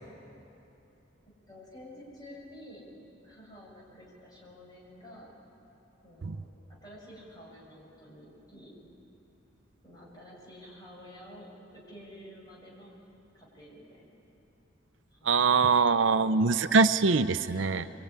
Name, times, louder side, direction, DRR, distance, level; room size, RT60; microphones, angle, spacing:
voice 1, 1.5-2.8 3.2-5.3 6.0-8.7 9.8-12.9 13.3-14.1 15.1-16.4 17.5-17.9, equal, 20° left, -4 dB, 7.4 m, -50 dB
voice 2, 15.2-17.8, right 4 dB, 75° right, 12 dB, 0.6 m, -23 dB
24.5 x 23.0 x 9.8 m, 3.0 s
head